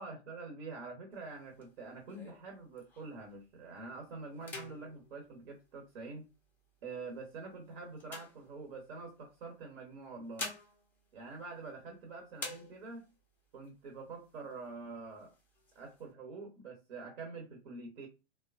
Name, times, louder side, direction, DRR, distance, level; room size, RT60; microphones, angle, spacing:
voice 1, 0.0-6.3 6.8-10.5 11.1-13.1 13.5-15.3 15.7-18.1, right 3 dB, 60° right, 1.0 m, -46 dB
sound 1, 1.1-3.3 3.8-4.0 4.3-6.3 6.9-9.1 10.0-12.0 12.3-13.2 13.6-13.7 14.0-14.7 15.1-16.0, left 3 dB, 5° left, 0.5 m, -48 dB
3.1 x 2.2 x 2.3 m
figure-of-eight pair, 105°, 34 cm